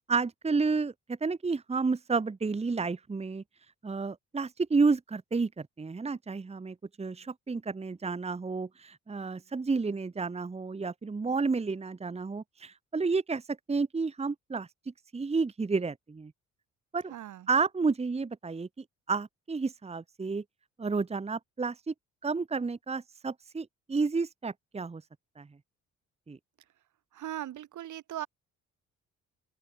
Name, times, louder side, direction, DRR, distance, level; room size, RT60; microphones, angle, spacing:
voice 1, 0.0-3.4 3.8-14.7 15.1-16.3 16.9-17.1 17.5-18.7 19.1-20.4 20.8-21.9 22.2-25.0 25.4-25.5 26.3-26.4, right 4 dB, 20° right, 1.2 m, -31 dB
voice 2, 17.1-17.5 27.1-28.3, right 12 dB, 75° right, 5.6 m, -39 dB
open air
cardioid pair, 90°, 30 cm